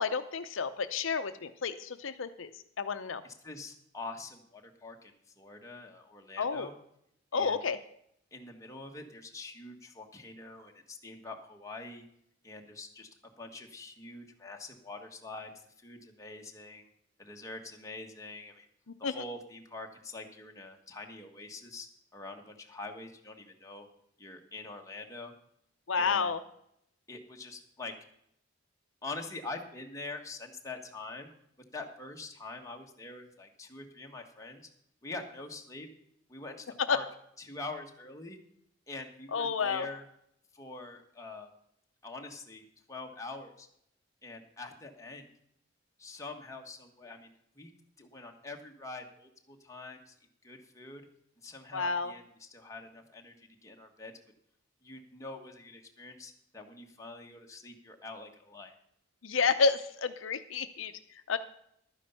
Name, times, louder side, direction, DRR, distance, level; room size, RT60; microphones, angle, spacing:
voice 1, 0.0-2.5 2.8-3.2 6.4-6.7 7.3-7.8 19.0-19.2 25.9-26.4 36.9-37.0 39.3-39.9 51.7-52.1 59.2-60.9 61.3-61.4, left 5 dB, 75° left, 10 dB, 0.7 m, -30 dB
voice 2, 3.2-6.7 7.3-7.6 8.3-12.0 12.4-13.1 13.4-15.5 15.8-16.8 17.2-18.7 19.0-21.9 22.1-23.9 24.2-25.3 25.9-26.3 27.1-27.9 29.0-31.3 31.7-34.7 35.0-35.9 36.3-37.0 37.4-38.4 38.9-40.0 40.5-41.5 42.0-43.7 44.2-45.3 46.0-47.7 48.0-50.1 50.4-51.1 51.4-54.1 54.8-58.7, left 2 dB, 15° left, 1 dB, 1.5 m, -45 dB
12.0 x 9.7 x 5.6 m, 0.72 s
head